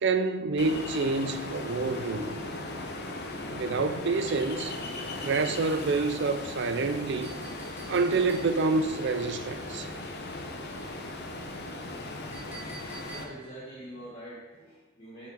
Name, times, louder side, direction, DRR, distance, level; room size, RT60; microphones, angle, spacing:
voice 1, 0.0-2.4 3.5-4.8 5.2-7.4 7.9-9.9, right 3 dB, 55° right, 0.5 m, -27 dB
Ocean, 0.6-13.2, left 2 dB, 55° left, 0.9 m, -38 dB
Chink clink, 7.2-8.8 12.3-13.6, right 3 dB, 10° right, 1.5 m, -48 dB
voice 2, 13.0-15.3, right 1 dB, 30° left, 1.7 m, -44 dB
7.2 x 6.0 x 4.8 m
head